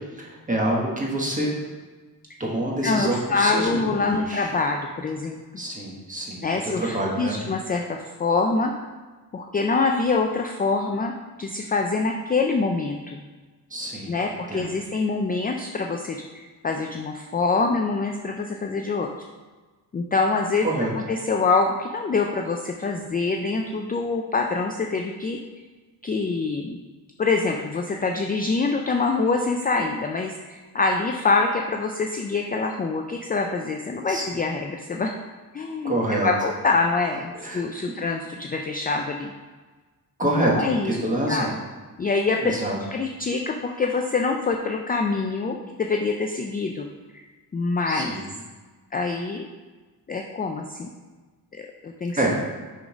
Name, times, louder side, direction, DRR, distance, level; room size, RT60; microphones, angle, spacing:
voice 1, 0.2-1.5 2.4-4.5 5.6-7.4 13.7-14.2 14.5-14.7 20.6-20.9 34.1-34.2 35.8-36.3 37.3-37.6 40.2-40.5 40.8-41.6 42.4-42.8 47.9-48.2 52.2-52.3, right 1 dB, 20° right, -3 dB, 1.3 m, -26 dB
voice 2, 2.8-5.6 6.4-8.7 9.3-13.2 14.1-19.1 19.9-20.7 21.0-25.4 26.0-26.8 27.2-35.1 35.5-39.3 40.4-41.0 41.3-41.5 42.0-42.6 42.9-46.9 47.5-48.1 48.9-49.5 50.1-50.9 51.8-52.2, left 4 dB, 25° left, 2 dB, 0.3 m, -25 dB
6.5 x 3.9 x 4.9 m, 1.3 s
wide cardioid pair, 150°, 39 cm